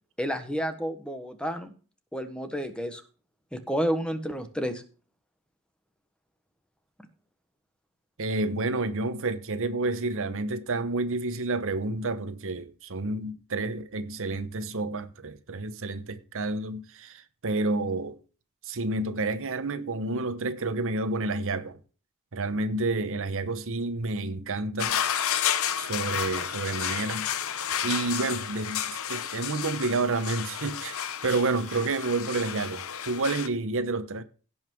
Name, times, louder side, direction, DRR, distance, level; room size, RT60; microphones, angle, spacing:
voice 1, 0.2-1.7 2.1-3.0 3.5-4.8, equal, 5° left, 1.3 m, -30 dB
voice 2, 8.2-18.2 18.6-21.8 22.3-25.0 25.8-34.2, right 3 dB, 65° right, 0.9 m, -30 dB
sound 1, 24.8-33.5, left 9 dB, 70° left, 0.9 m, -31 dB
16.5 x 5.7 x 4.6 m
head